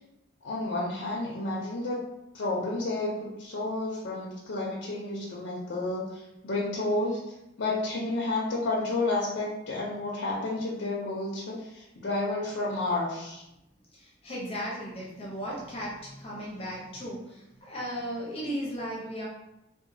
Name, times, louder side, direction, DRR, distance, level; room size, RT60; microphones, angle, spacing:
voice 1, 0.4-2.0 2.3-7.2 7.6-13.4, left 2 dB, 70° left, -5 dB, 0.5 m, -31 dB
voice 2, 13.9-19.2, equal, 30° left, -5 dB, 0.6 m, -36 dB
2.9 x 2.1 x 2.6 m, 0.89 s
head